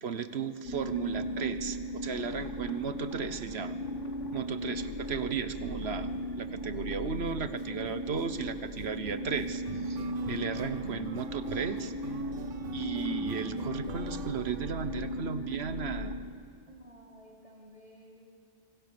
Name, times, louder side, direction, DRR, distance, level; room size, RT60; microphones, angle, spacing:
voice 1, 0.0-3.8 4.3-6.1 6.3-11.9 12.7-16.1, right 6 dB, 60° right, 12 dB, 1.3 m, -35 dB
sound 1, 0.6-16.2, equal, 90° left, 2.6 m, -36 dB
voice 2, 6.9-8.0 8.5-9.2 16.7-18.3, right 2 dB, 30° right, -1 dB, 3.1 m, -53 dB
sound 2, 7.3-7.6 8.2-15.3, right 8 dB, 90° right, 1.1 m, -46 dB
26.0 x 24.5 x 6.9 m, 2.3 s
omnidirectional pair, 1.2 m